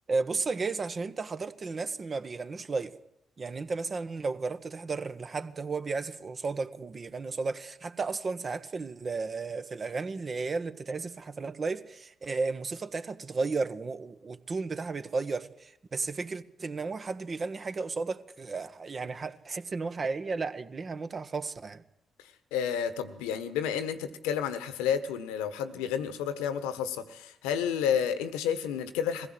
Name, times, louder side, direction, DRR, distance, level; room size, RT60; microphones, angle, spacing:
voice 1, 0.1-3.0 3.4-21.8, right 4 dB, 45° right, 1.5 m, -34 dB
voice 2, 22.5-29.3, left 8 dB, 90° left, 1.3 m, -30 dB
21.5 x 16.0 x 7.9 m
hypercardioid pair, 50°, 0 cm